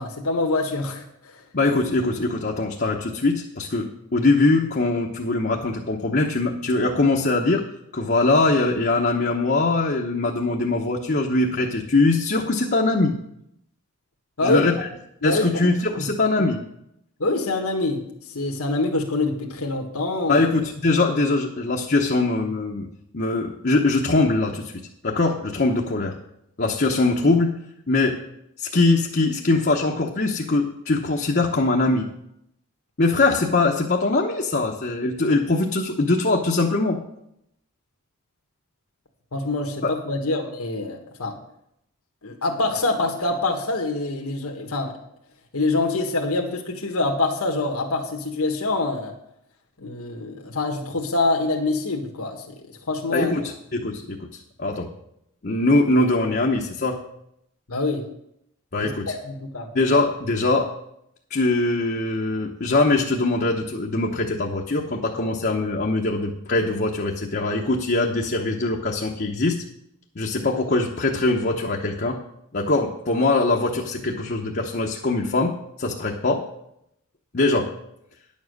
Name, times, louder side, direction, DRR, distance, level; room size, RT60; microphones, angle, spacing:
voice 1, 0.0-1.4 14.4-14.6 15.2-15.6 15.9-16.1 17.2-20.5 39.3-41.4 42.2-45.0 45.5-49.1 49.8-53.3 57.7-58.1 58.8-59.7, left 2 dB, 80° left, 2 dB, 1.5 m, -25 dB
voice 2, 1.5-7.6 7.9-13.2 14.4-14.7 15.2-16.6 20.3-22.9 23.1-24.7 25.0-26.1 26.6-27.6 27.9-28.2 28.6-32.1 33.0-37.0 39.8-39.9 53.1-54.3 54.6-54.9 55.4-57.0 58.7-59.1 59.7-60.7 61.3-69.6 70.2-72.2 72.5-75.5 75.8-76.4 77.3-77.7, left 2 dB, 45° left, -1 dB, 0.9 m, -22 dB
10.0 x 7.3 x 6.4 m, 0.77 s
head